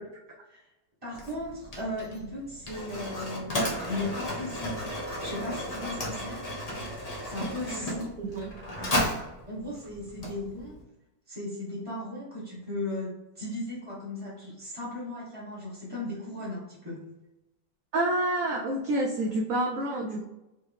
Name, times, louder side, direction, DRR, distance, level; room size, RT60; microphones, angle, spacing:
voice 1, 1.0-6.4 7.3-8.3 9.5-10.8 11.3-17.0, left 1 dB, 15° right, -9 dB, 1.3 m, -37 dB
Mechanisms, 1.1-10.8, equal, 30° left, 0.7 m, -34 dB
voice 2, 8.2-8.5 17.9-20.3, right 1 dB, 70° right, 1 dB, 0.8 m, -28 dB
4.3 x 3.1 x 3.4 m, 0.97 s
omnidirectional pair, 2.0 m